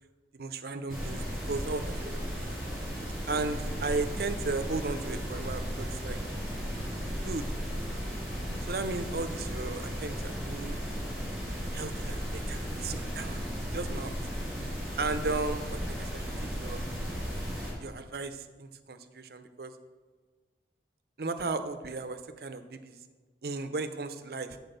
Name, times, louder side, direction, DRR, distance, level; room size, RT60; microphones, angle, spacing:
voice 1, 0.3-1.2 1.5-2.2 3.3-6.2 7.2-7.5 8.7-10.8 11.7-13.4 13.7-14.1 15.0-16.2 16.6-16.8 17.8-19.7 21.2-23.0 23.4-24.6, right 3 dB, 60° right, 9 dB, 0.6 m, -35 dB
sound 1, 0.9-17.7, equal, ahead, 2.8 m, -35 dB
7.8 x 4.6 x 6.6 m, 1.4 s
head